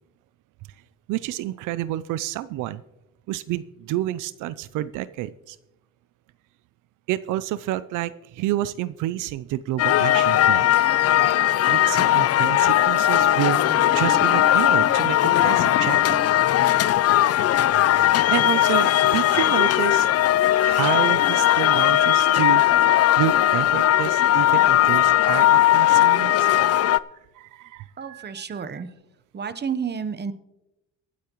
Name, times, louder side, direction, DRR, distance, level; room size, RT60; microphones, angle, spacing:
voice 1, 1.1-2.8 3.3-5.6 7.1-10.7 11.7-13.6 13.9-16.2 18.3-20.1 20.6-22.6 23.2-26.5 27.3-28.6, right 14 dB, 90° right, 16 dB, 0.5 m, -29 dB
sound 1, 9.8-27.0, left 13 dB, 55° left, 0.4 m, -18 dB
sound 2, 13.1-19.4, left 3 dB, 85° left, 2.6 m, -37 dB
voice 2, 28.0-28.9 29.3-30.3, right 6 dB, 35° right, 12 dB, 0.9 m, -30 dB
23.5 x 8.4 x 3.0 m, 0.94 s
cardioid pair, 90°, 30 cm